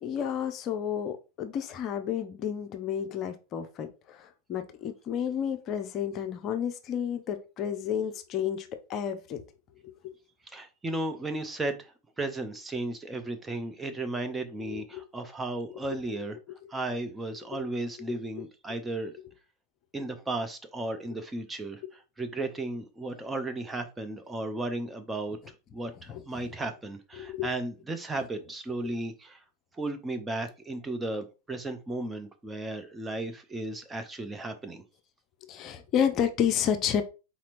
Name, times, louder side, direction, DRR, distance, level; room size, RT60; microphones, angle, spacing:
voice 1, 0.0-9.4 9.8-10.1 14.6-15.0 16.5-16.6 18.1-18.2 26.1-26.4 27.2-27.5 35.4-37.0, left 8 dB, 35° left, 0.6 m, -31 dB
voice 2, 10.5-16.4 16.7-19.1 19.9-29.4 29.7-34.8, right 2 dB, 10° right, 0.6 m, -35 dB
4.3 x 4.1 x 2.5 m
figure-of-eight pair, 90°, 0 cm